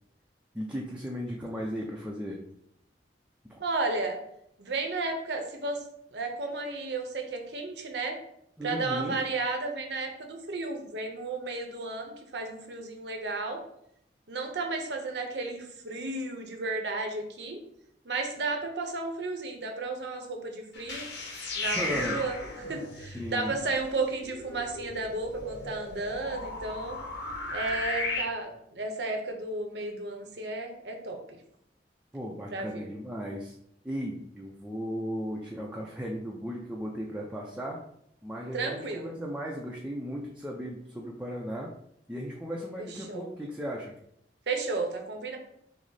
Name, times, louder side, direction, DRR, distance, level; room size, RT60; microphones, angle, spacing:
voice 1, 0.5-2.4 3.4-3.6 8.6-9.2 21.7-22.2 23.1-23.5 32.1-33.5 33.8-37.8 38.2-41.7 42.1-43.9, equal, 5° right, -3 dB, 0.5 m, -36 dB
voice 2, 3.6-4.2 4.6-5.8 6.1-8.2 8.6-13.6 14.3-17.6 18.0-21.1 21.5-27.0 27.5-31.4 32.5-32.9 38.5-39.1 42.8-43.3 44.5-45.4, right 3 dB, 75° right, 3 dB, 0.9 m, -33 dB
sound 1, 20.7-28.2, left 2 dB, 80° left, 1.0 m, -36 dB
6.1 x 2.0 x 4.0 m, 0.73 s
head